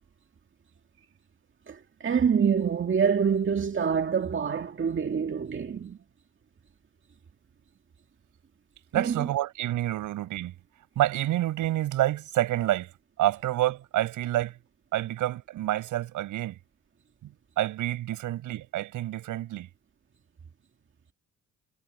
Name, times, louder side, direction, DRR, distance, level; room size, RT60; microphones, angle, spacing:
voice 1, 1.7-6.0 8.9-9.3, right 7 dB, 40° right, 2.2 m, -26 dB
voice 2, 8.9-10.5 10.9-12.9 13.2-14.6 14.9-16.6 17.6-19.7, right 14 dB, 85° right, 6.6 m, -28 dB
cardioid pair, 90°, 30 cm